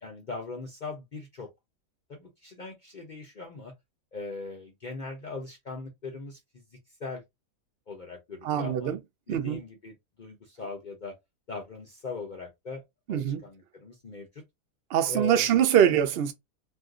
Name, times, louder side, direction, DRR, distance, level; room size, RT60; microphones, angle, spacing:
voice 1, 0.0-1.5 2.1-3.7 4.1-6.6 7.0-7.2 7.9-9.0 9.3-11.1 11.5-12.8 13.1-14.3 15.1-15.5, left 3 dB, 60° left, 0.5 m, -40 dB
voice 2, 8.4-9.0 9.3-9.6 13.1-13.4 14.9-16.3, right 9 dB, 70° right, 0.5 m, -23 dB
2.6 x 2.4 x 3.6 m
omnidirectional pair, 1.7 m